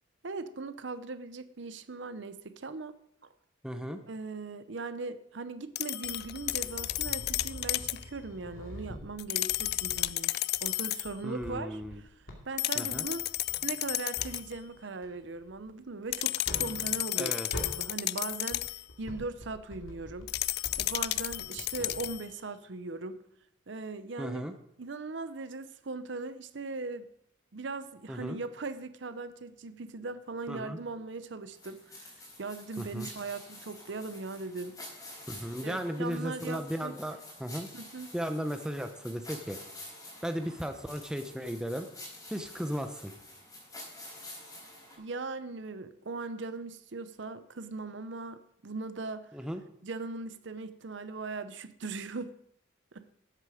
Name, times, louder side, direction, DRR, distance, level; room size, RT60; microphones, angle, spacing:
voice 1, 0.2-2.9 4.1-12.2 12.4-13.2 13.6-17.4 17.7-23.2 23.7-24.4 24.8-27.1 27.5-32.1 32.4-34.8 35.6-37.0 37.7-38.1 45.0-49.3 49.8-52.4 52.9-53.1, right 3 dB, 65° right, 12 dB, 0.7 m, -39 dB
voice 2, 3.6-4.0 11.2-12.0 12.7-13.1 17.2-17.5 24.2-24.5 28.1-28.4 30.5-30.8 32.8-33.1 35.3-37.7 38.1-39.6 40.2-41.9 42.3-43.1 49.3-49.6, equal, 5° right, 6 dB, 0.7 m, -35 dB
sound 1, 5.8-8.0 9.2-11.1 12.6-14.5 16.1-18.8 20.3-22.3, left 16 dB, 50° left, 0.3 m, -32 dB
sound 2, 6.0-10.2 10.6-12.4 12.9-14.7 15.0-17.2 17.5-17.9 18.3-22.1, left 1 dB, 80° left, 2.4 m, -45 dB
sound 3, 31.5-45.0, left 1 dB, 20° left, 4.2 m, -48 dB
12.5 x 8.0 x 5.0 m, 0.75 s
head